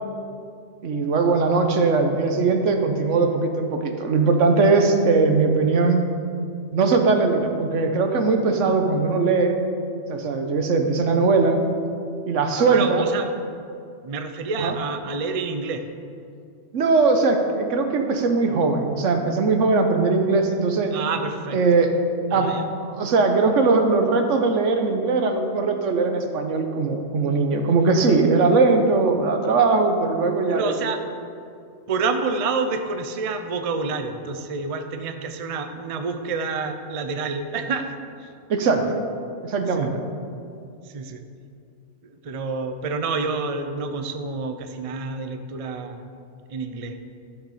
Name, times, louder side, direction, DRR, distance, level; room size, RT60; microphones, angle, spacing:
voice 1, 0.8-6.0 6.7-9.5 10.1-11.6 12.3-13.0 14.6-14.7 16.7-20.9 21.5-21.9 22.3-22.5 23.0-30.7 38.5-39.0 39.4-40.0, right 4 dB, 75° right, 5 dB, 1.2 m, -20 dB
voice 2, 12.6-13.3 14.0-15.8 20.9-21.6 22.3-22.6 30.5-31.0 31.9-37.9 38.2-38.3 39.7-39.9 40.8-41.2 42.0-46.0 46.5-47.0, right 4 dB, 40° right, 7 dB, 0.5 m, -28 dB
12.0 x 6.5 x 4.9 m, 2.4 s
omnidirectional pair, 1.3 m